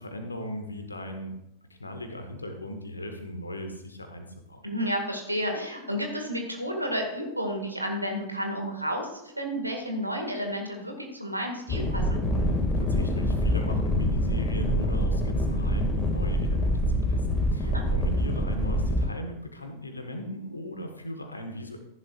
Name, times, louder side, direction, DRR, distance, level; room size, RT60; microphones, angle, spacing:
voice 1, 0.0-1.3 1.8-4.6 12.8-21.8, left 1 dB, 80° left, 5 dB, 1.5 m, -38 dB
voice 2, 4.6-12.2 17.6-17.9, equal, 85° right, 3 dB, 2.0 m, -31 dB
sound 1, 11.7-19.1, equal, 25° left, 2.2 m, -25 dB
14.0 x 11.0 x 2.5 m, 0.83 s
figure-of-eight pair, 90°, 0 cm